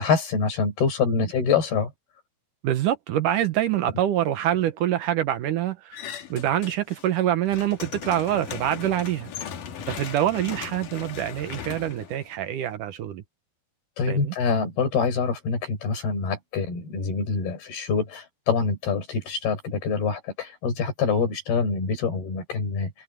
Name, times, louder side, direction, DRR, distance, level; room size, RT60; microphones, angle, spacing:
voice 1, 0.0-1.9 14.0-22.9, left 5 dB, 90° left, 7.3 m, -25 dB
voice 2, 2.6-6.0 6.3-9.3 9.9-13.2 14.1-14.3, right 12 dB, 70° right, 2.3 m, -25 dB
sound 1, 5.9-7.1 7.4-12.7, left 8 dB, 65° left, 3.1 m, -38 dB
omnidirectional pair, 4.3 m